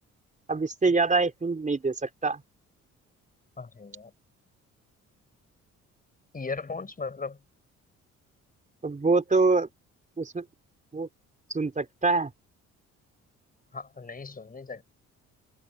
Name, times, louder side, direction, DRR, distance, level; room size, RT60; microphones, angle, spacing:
voice 1, 0.5-2.4 8.8-9.7 10.2-10.4 10.9-11.1 11.5-12.3, right 3 dB, 25° right, 4.0 m, -25 dB
voice 2, 3.6-4.1 6.3-7.4 13.7-14.8, left 4 dB, 30° left, 5.3 m, -37 dB
cardioid pair, 90°, 30 cm